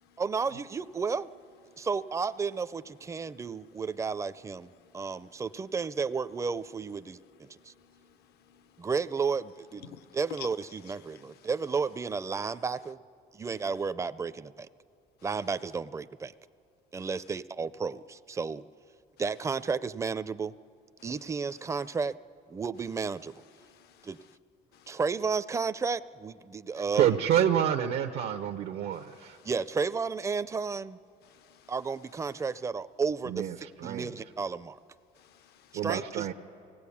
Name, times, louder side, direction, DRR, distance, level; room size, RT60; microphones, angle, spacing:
voice 1, 0.2-1.3 1.8-7.2 7.6-7.7 8.8-13.0 13.3-14.7 15.2-16.3 16.9-18.6 19.2-20.5 21.0-22.1 22.5-23.3 24.0-24.2 24.9-27.2 29.4-31.0 31.7-33.5 33.8-34.8 35.8-36.3, right 5 dB, 15° right, 0.4 m, -32 dB
voice 2, 7.8-8.1 8.5-8.6 9.9-10.0 23.7-24.1 24.7-24.9 31.3-31.7 35.3-35.8, left 8 dB, 70° left, 0.7 m, -57 dB
voice 3, 26.8-29.4 33.2-34.1 35.7-36.3, right 10 dB, 80° right, 0.8 m, -28 dB
23.5 x 17.5 x 8.5 m
cardioid pair, 110°, 17 cm